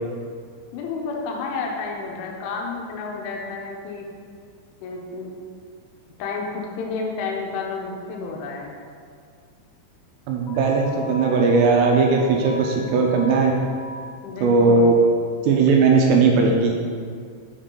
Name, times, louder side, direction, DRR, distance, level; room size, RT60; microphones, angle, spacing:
voice 1, 0.7-4.1 4.8-5.3 6.2-8.8 14.2-14.9, left 4 dB, 85° left, 0 dB, 3.3 m, -30 dB
voice 2, 10.3-13.5 14.4-14.9 15.4-16.7, right 4 dB, 80° right, 0 dB, 2.5 m, -18 dB
Alarm, 10.5-13.9, left 1 dB, 70° left, 2.1 m, -39 dB
7.2 x 7.0 x 3.8 m, 2.1 s
omnidirectional pair, 5.4 m